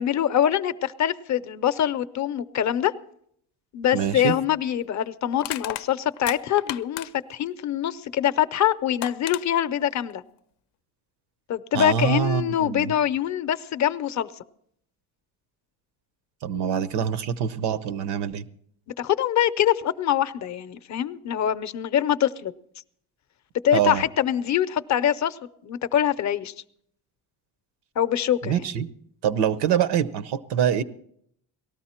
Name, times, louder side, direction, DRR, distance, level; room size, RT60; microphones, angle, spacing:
voice 1, 0.0-2.9 3.7-10.2 11.5-14.3 19.0-22.5 23.6-26.5 28.0-28.7, left 10 dB, 45° left, 13 dB, 0.6 m, -24 dB
voice 2, 3.9-4.3 11.7-12.9 16.4-18.5 23.7-24.0 28.4-28.9 29.2-30.8, right 9 dB, 85° right, 13 dB, 0.8 m, -25 dB
Crushing, 4.0-4.2 5.4-7.4 8.5-8.6 9.0-9.4, left 14 dB, 90° left, 0.6 m, -34 dB
18.5 x 13.5 x 4.3 m, 0.69 s
cardioid pair, 130°, 39 cm